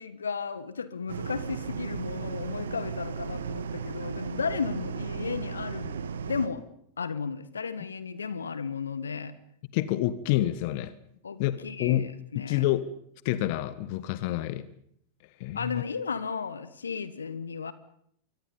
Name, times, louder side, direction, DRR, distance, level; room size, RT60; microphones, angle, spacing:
voice 1, 0.0-6.6 7.0-9.3 11.2-12.7 15.5-17.7, left 5 dB, 70° left, 15 dB, 1.4 m, -34 dB
sound 1, 1.1-6.5, right 6 dB, 65° right, 1.6 m, -35 dB
voice 2, 9.7-10.9 11.4-12.1 12.3-12.9 13.2-14.7 15.4-15.8, left 14 dB, 45° left, 16 dB, 1.2 m, -28 dB
26.5 x 24.0 x 5.5 m, 0.68 s
figure-of-eight pair, 90°, 0 cm